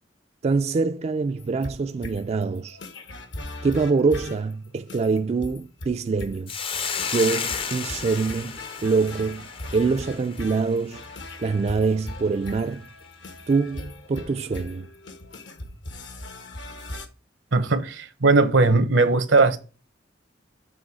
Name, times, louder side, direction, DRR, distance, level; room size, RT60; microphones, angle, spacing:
voice 1, 0.4-2.8 3.6-6.5 7.1-11.0 11.4-12.9 13.5-14.9, right 4 dB, 35° right, 0.3 m, -25 dB
sound 1, 1.4-17.1, left 1 dB, 70° left, 1.1 m, -39 dB
Hiss, 6.5-11.0, left 6 dB, 30° left, 0.5 m, -32 dB
voice 2, 17.5-19.6, right 3 dB, 80° right, 1.1 m, -19 dB
7.6 x 3.1 x 6.1 m
head